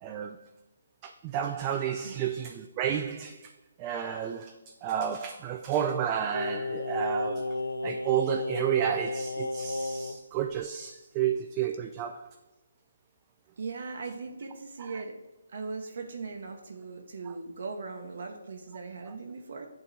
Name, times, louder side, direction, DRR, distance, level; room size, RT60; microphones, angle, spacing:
voice 1, 0.0-0.4 1.0-3.5 3.8-4.5 4.8-7.6 7.8-12.3 17.3-17.4 19.1-19.2, right 9 dB, 25° right, 0.3 m, -31 dB
Singing, 6.3-10.2 10.5-10.6, left 2 dB, 90° left, 0.4 m, -33 dB
voice 2, 13.6-15.2 15.5-19.7, right 4 dB, 60° right, 0.8 m, -39 dB
8.9 x 3.8 x 3.2 m
figure-of-eight pair, 150°, 0 cm